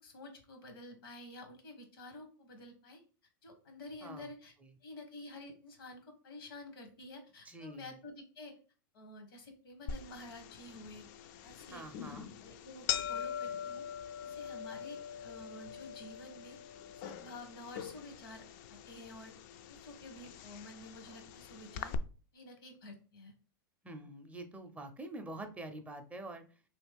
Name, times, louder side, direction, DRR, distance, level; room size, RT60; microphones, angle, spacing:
voice 1, 0.0-3.0 3.4-4.5 4.8-8.5 8.9-11.0 11.4-12.1 12.4-13.8 14.2-16.6 17.0-18.4 18.7-19.3 19.7-21.9 22.3-23.3, left 2 dB, 85° left, 5 dB, 1.3 m, -50 dB
voice 2, 7.5-8.0 11.7-12.3 23.8-26.6, right 2 dB, 10° right, 6 dB, 0.5 m, -46 dB
sound 1, 9.9-22.0, left 9 dB, 55° left, 0.4 m, -43 dB
3.1 x 2.9 x 3.3 m, 0.37 s
hypercardioid pair, 120°, 12 cm